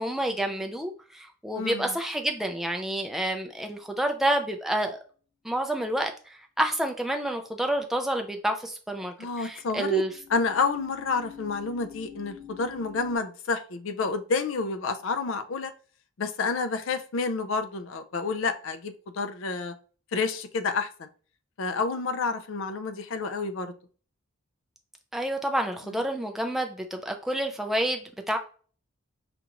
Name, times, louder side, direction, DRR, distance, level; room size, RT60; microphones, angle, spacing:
voice 1, 0.0-5.0 5.4-10.1 25.1-28.4, right 1 dB, ahead, 3 dB, 0.4 m, -29 dB
voice 2, 1.5-1.9 9.2-10.0 10.3-15.7 16.2-19.7 20.1-21.1 21.6-23.7 25.9-26.0, left 4 dB, 70° left, 9 dB, 0.4 m, -29 dB
sound 1, 2.9-3.5 9.6-13.2, left 10 dB, 25° left, 0.9 m, -47 dB
5.1 x 2.4 x 2.9 m, 0.41 s
head